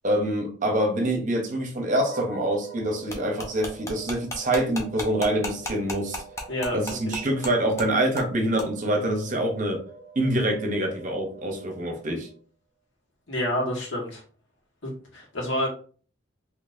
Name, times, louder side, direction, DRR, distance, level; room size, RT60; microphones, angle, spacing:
voice 1, 0.0-6.2 6.7-9.8 10.2-12.3, right 1 dB, 40° right, 0.8 m, -25 dB
sound 1, 1.8-12.4, right 4 dB, 5° right, 1.8 m, -47 dB
sound 2, 3.1-7.5 7.8-7.9 8.2-8.3 8.6-8.7, left 1 dB, 15° left, 0.7 m, -33 dB
voice 2, 6.5-7.2 13.3-14.2 14.8-15.7, left 1 dB, 75° left, 1.5 m, -29 dB
3.9 x 2.8 x 2.5 m
head